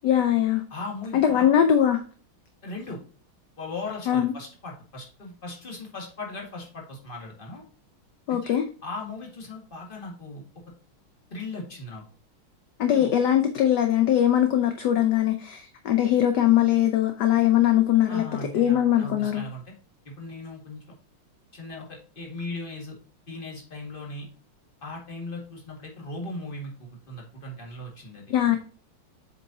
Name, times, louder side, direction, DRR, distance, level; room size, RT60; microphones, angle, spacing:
voice 1, 0.0-0.6 1.1-2.0 4.1-4.3 8.3-8.6 12.8-18.2 18.5-19.4 28.3-28.6, left 11 dB, 65° left, 1.1 m, -21 dB
voice 2, 0.7-1.5 2.6-3.0 3.6-7.6 8.3-8.6 8.8-10.4 11.3-12.0 12.9-13.1 18.1-19.7 20.1-20.8 21.5-23.0 23.3-24.3 24.8-28.6, left 2 dB, 25° left, 1.9 m, -38 dB
7.6 x 5.4 x 2.8 m
omnidirectional pair, 2.3 m